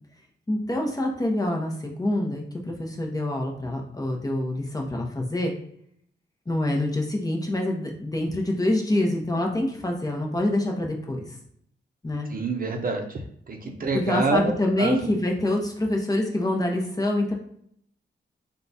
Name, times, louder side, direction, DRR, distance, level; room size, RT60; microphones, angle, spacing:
voice 1, 0.5-5.5 6.5-11.2 12.0-12.3 13.9-17.3, left 1 dB, 20° left, 0 dB, 0.8 m, -26 dB
voice 2, 12.3-13.2 13.5-14.5 14.8-15.1, right 3 dB, 50° right, 3 dB, 0.6 m, -26 dB
3.8 x 2.3 x 4.0 m, 0.68 s
wide cardioid pair, 95°, 19 cm